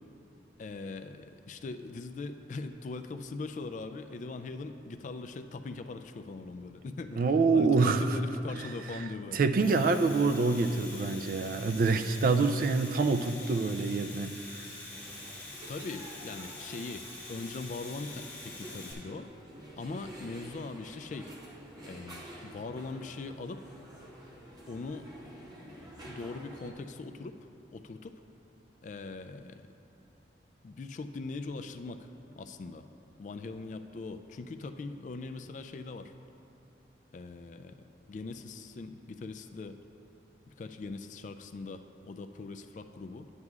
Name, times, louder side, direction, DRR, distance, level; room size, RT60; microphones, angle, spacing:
voice 1, 0.6-7.2 7.5-10.4 15.7-19.3 19.8-21.4 21.9-23.7 24.7-25.1 25.5-27.4 27.7-28.2 28.8-29.8 30.6-32.1 32.4-32.9 33.2-36.1 37.1-37.8 38.1-39.8 40.6-43.3, left 3 dB, 45° left, 9 dB, 0.3 m, -41 dB
voice 2, 7.1-8.2 9.3-14.7, right 4 dB, 50° right, 8 dB, 0.3 m, -26 dB
Domestic sounds home sounds, 9.6-18.9, left 2 dB, 10° left, 1.8 m, -46 dB
sound 1, 14.9-26.7, right 1 dB, 20° right, 0.9 m, -49 dB
10.5 x 9.5 x 2.4 m, 2.8 s
head